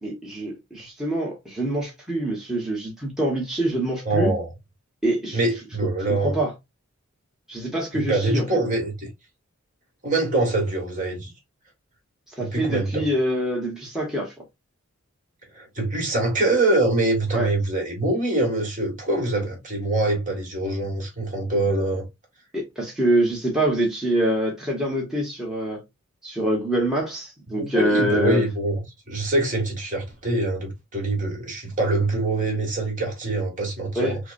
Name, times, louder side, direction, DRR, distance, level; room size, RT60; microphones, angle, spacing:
voice 1, 0.0-4.3 5.0-5.4 6.1-6.5 7.5-8.5 12.3-14.3 17.3-17.5 22.5-25.8 26.2-28.5 33.9-34.2, right 1 dB, 5° right, 1.1 m, -25 dB
voice 2, 4.0-4.5 5.3-6.3 7.9-9.1 10.0-11.3 12.4-13.1 15.5-22.0 27.6-28.8 29.1-34.2, right 2 dB, 40° right, 1.7 m, -24 dB
5.7 x 2.2 x 2.5 m
head